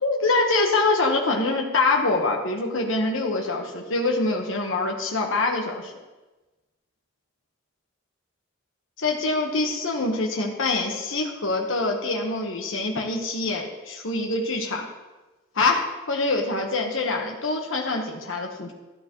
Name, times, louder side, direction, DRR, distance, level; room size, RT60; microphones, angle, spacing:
voice 1, 0.0-5.9 9.0-14.9 15.5-18.7, left 3 dB, 80° left, 1 dB, 1.3 m, -25 dB
14.0 x 9.2 x 3.1 m, 1.1 s
head